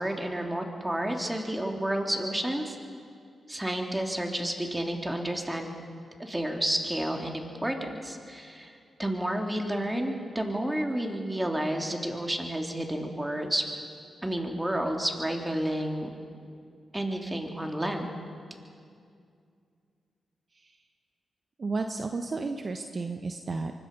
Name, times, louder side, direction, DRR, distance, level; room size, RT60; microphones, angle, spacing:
voice 1, 0.0-2.8 3.5-5.7 6.2-13.7 14.2-16.1 16.9-18.1, right 1 dB, 15° right, 2 dB, 3.3 m, -30 dB
voice 2, 21.6-23.7, right 3 dB, 50° right, 6 dB, 1.1 m, -33 dB
24.0 x 20.5 x 5.5 m, 2.3 s
supercardioid pair, 45°, 0 cm